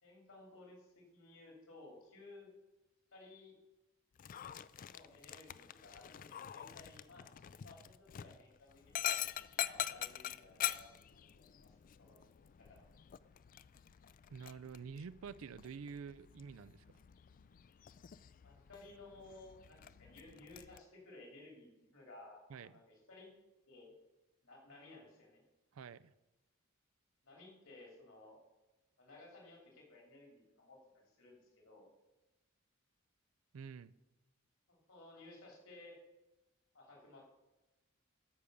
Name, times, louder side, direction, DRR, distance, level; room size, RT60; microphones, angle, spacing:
voice 1, 0.0-2.5 3.1-3.6 4.8-9.2 9.6-12.2 12.5-12.9 18.4-23.3 23.7-23.9 24.4-25.4 27.2-28.4 29.0-31.9 34.7-36.0 36.7-37.2, left 2 dB, 75° left, -1 dB, 3.3 m, -57 dB
Dog, 4.1-20.8, left 11 dB, 40° left, 0.3 m, -45 dB
voice 2, 14.3-16.8 22.5-22.7 25.7-26.1 33.5-33.9, right 6 dB, 90° right, 16 dB, 0.4 m, -48 dB
13.5 x 5.2 x 6.9 m, 1.1 s
head